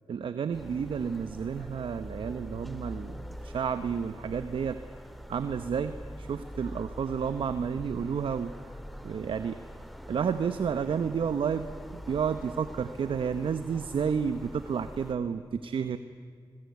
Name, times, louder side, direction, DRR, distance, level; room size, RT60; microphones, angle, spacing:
voice 1, 0.1-4.8 5.3-8.5 9.0-9.6 10.1-11.7 12.1-16.0, right 6 dB, 75° right, 11 dB, 0.9 m, -31 dB
sound 1, 0.5-15.1, equal, ahead, 2.0 m, -44 dB
26.0 x 22.0 x 9.5 m, 2.2 s
cardioid pair, 65°, 9 cm